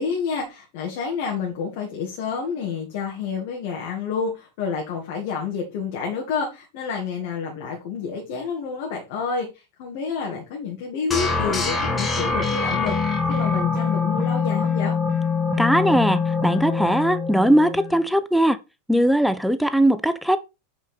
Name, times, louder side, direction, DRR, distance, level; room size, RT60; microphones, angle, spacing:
voice 1, 0.0-12.9 13.3-14.9, left 5 dB, 50° left, 2.1 m, -29 dB
sound 1, 11.1-18.0, left 4 dB, 15° left, 1.7 m, -24 dB
voice 2, 15.6-18.6 18.9-20.4, right 1 dB, ahead, 0.5 m, -19 dB
8.1 x 4.5 x 4.3 m
figure-of-eight pair, 90°, 0 cm